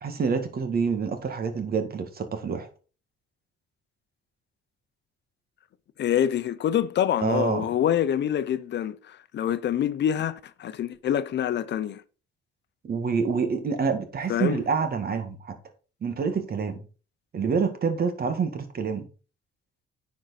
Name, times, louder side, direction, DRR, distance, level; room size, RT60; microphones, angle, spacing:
voice 1, 0.0-2.7 7.2-7.7 12.8-15.6 16.0-16.8 17.3-19.1, right 5 dB, 50° right, 1.7 m, -27 dB
voice 2, 6.0-12.0 14.3-14.6, left 10 dB, 60° left, 0.7 m, -26 dB
9.9 x 4.7 x 4.1 m
cardioid pair, 90°, 20 cm